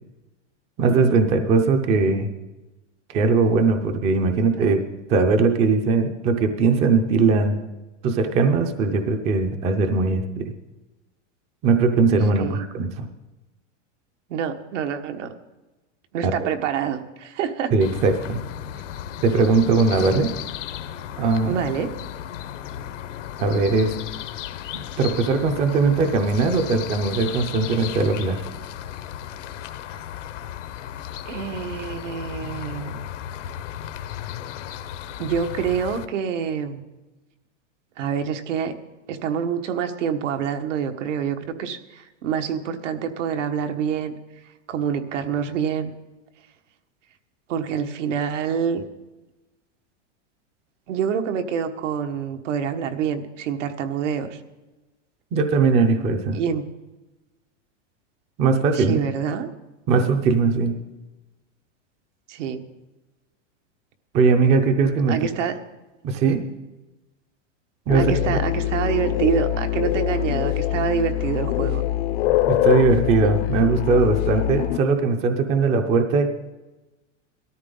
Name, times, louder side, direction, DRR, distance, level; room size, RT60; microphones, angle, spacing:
voice 1, 0.8-2.3 3.1-4.8 5.1-7.6 8.0-10.5 11.6-13.1 16.2-16.3 17.7-18.4 19.2-20.3 21.2-21.5 23.4-23.9 25.0-28.4 55.3-56.4 58.4-59.0 59.9-60.8 64.1-65.2 66.0-66.4 67.9-68.1 72.5-76.3, right 4 dB, 20° right, 7 dB, 0.5 m, -20 dB
voice 2, 14.3-15.3 16.1-17.7 21.4-21.9 31.2-33.0 35.2-36.8 38.0-38.7 39.1-44.2 44.7-45.9 47.5-48.8 50.9-54.4 56.3-56.6 58.7-59.5 62.3-62.6 65.1-65.6 67.9-71.8, right 7 dB, 80° right, 6 dB, 1.4 m, -26 dB
sound 1, 17.8-36.1, left 11 dB, 80° left, 1.1 m, -35 dB
sound 2, 67.9-74.8, left 14 dB, 55° left, 0.7 m, -23 dB
18.0 x 13.5 x 3.8 m, 1.1 s
supercardioid pair, 170°, 36 cm